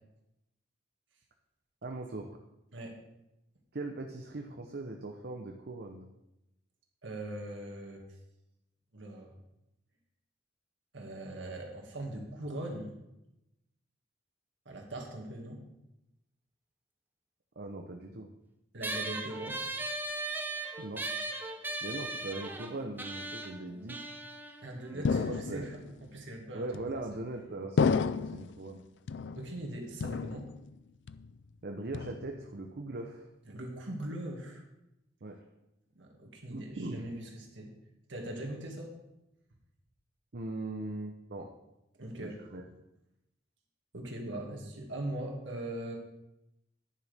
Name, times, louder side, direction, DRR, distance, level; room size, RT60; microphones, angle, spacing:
voice 1, 1.8-2.4 3.7-6.1 17.6-18.3 20.8-21.0 21.8-24.0 24.9-25.7 26.5-28.8 31.6-33.3 35.2-35.4 36.5-37.1 40.3-41.5 42.2-42.6, right 2 dB, 55° right, 2 dB, 0.8 m, -40 dB
voice 2, 7.0-8.0 8.9-9.3 10.9-12.9 14.7-15.6 18.7-19.6 24.6-26.7 29.4-30.4 33.5-34.6 36.0-37.7 38.1-38.9 42.0-42.4 43.9-45.9, right 1 dB, 75° right, 0 dB, 2.1 m, -40 dB
sound 1, 18.8-25.6, right 2 dB, 10° right, 0.8 m, -38 dB
sound 2, 25.0-25.9 26.7-27.3 27.8-28.6 29.1-29.7 30.0-30.8 31.1-31.5 31.9-32.5, left 5 dB, 70° left, 0.4 m, -31 dB
10.5 x 10.0 x 3.5 m, 0.88 s
head